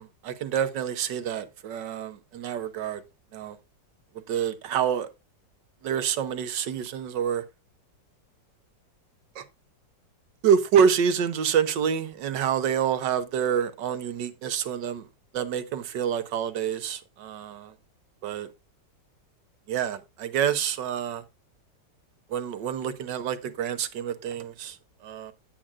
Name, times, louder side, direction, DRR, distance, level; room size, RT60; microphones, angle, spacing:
voice 1, 0.0-3.0 3.3-3.6 4.3-5.1 5.8-7.4 9.3-9.4 10.4-15.1 15.3-17.7 18.2-18.5 19.7-21.2 22.3-24.8 25.0-25.3, right 8 dB, 75° right, 1.5 m, -27 dB
9.9 x 8.7 x 2.4 m
omnidirectional pair, 2.0 m